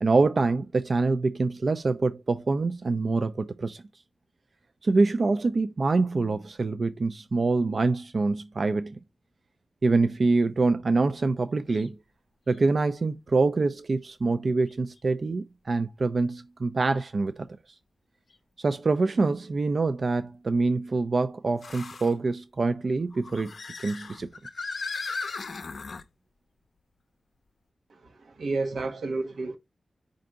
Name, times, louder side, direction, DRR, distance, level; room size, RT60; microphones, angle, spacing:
voice 1, 0.0-3.8 4.8-9.0 9.8-12.0 12.5-17.5 18.6-23.5 23.8-24.3, right 3 dB, 50° right, 0.3 m, -25 dB
sound 1, 11.7-11.9 12.5-12.6 14.7-14.8 18.3-18.4 21.6-22.1 23.1-26.1, left 4 dB, 60° left, 0.5 m, -37 dB
voice 2, 27.9-29.6, right 3 dB, 85° right, 0.8 m, -31 dB
4.4 x 2.6 x 3.8 m
wide cardioid pair, 100°, 0 cm